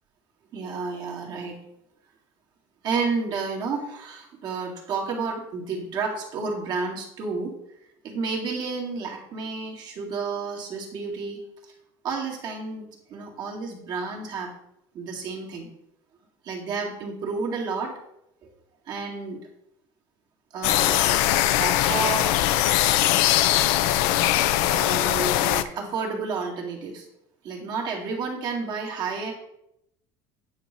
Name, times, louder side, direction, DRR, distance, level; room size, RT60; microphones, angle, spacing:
voice 1, 0.5-1.6 2.8-7.5 8.0-11.4 12.0-14.5 14.9-15.7 16.4-17.9 18.4-18.5 18.9-19.4 20.5-21.2 21.6-22.3 24.7-27.1 27.4-29.3, right 4 dB, 45° right, -1 dB, 2.0 m, -31 dB
sound 1, 20.6-25.6, left 13 dB, 75° left, 0.5 m, -21 dB
9.1 x 3.1 x 6.6 m, 0.78 s
cardioid pair, 150°, 10 cm